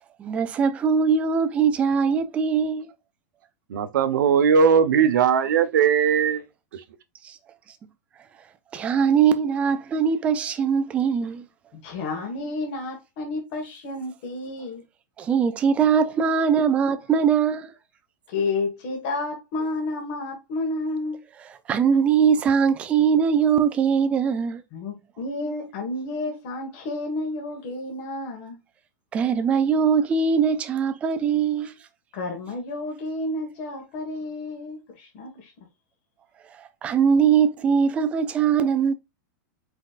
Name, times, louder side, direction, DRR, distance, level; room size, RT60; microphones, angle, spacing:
voice 1, 0.2-2.9 7.2-7.4 8.7-11.5 15.2-17.7 21.7-24.6 29.1-31.7 36.8-38.9, right 6 dB, 10° right, 0.4 m, -21 dB
voice 2, 3.7-6.4, right 7 dB, 75° right, 0.9 m, -19 dB
voice 3, 11.7-14.8 15.6-15.7 18.3-21.2 24.7-28.6 32.1-35.5, left 2 dB, 35° left, 1.6 m, -31 dB
4.7 x 4.2 x 2.4 m
supercardioid pair, 180°, 10 cm